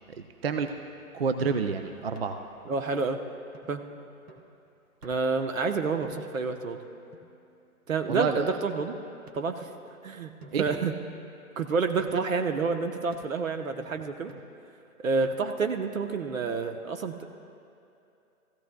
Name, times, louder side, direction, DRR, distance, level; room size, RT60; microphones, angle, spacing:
sound 1, 0.7-1.0 1.5-1.7 2.2-2.5 3.0-3.1 3.5-3.8 4.3-4.6 5.0-5.4 6.0-6.5 7.1-7.8 8.6-8.7 9.3-10.0 10.4-11.5 12.0-12.4 13.1-13.5 14.3-14.7 15.2-15.7, right 2 dB, 75° right, 1.6 m, -52 dB
voice 1, 1.1-2.4 8.1-8.5 10.5-10.7 15.1-15.2, right 5 dB, 45° right, 7 dB, 0.5 m, -28 dB
voice 2, 2.6-3.2 3.7-3.8 5.0-6.8 7.9-8.9 9.3-9.7 10.0-10.3 10.6-10.9 11.6-14.3 15.0-17.2, right 4 dB, 60° right, 6 dB, 1.1 m, -29 dB
16.5 x 15.0 x 2.3 m, 2.7 s
figure-of-eight pair, 135°, 44 cm